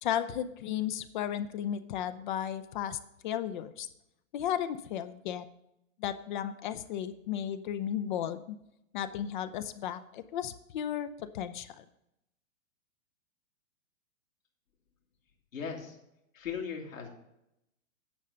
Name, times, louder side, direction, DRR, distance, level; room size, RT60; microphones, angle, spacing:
voice 1, 0.0-3.9 4.3-5.5 6.0-8.6 8.9-11.8, left 10 dB, 35° left, 12 dB, 0.6 m, -34 dB
voice 2, 15.5-16.0 16.3-17.1, left 6 dB, 75° left, 1 dB, 2.4 m, -38 dB
10.0 x 5.6 x 6.4 m, 0.84 s
figure-of-eight pair, 110°, 41 cm